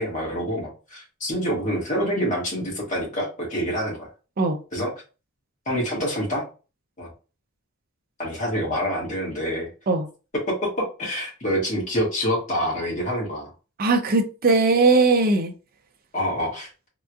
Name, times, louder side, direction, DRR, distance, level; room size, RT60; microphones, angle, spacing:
voice 1, 0.0-4.1 4.7-4.9 5.6-6.4 7.0-7.1 8.2-9.7 10.5-13.5 16.1-16.7, equal, 35° left, 1.5 m, -26 dB
voice 2, 13.8-15.5, right 3 dB, 40° right, 0.5 m, -19 dB
3.5 x 2.9 x 2.3 m
head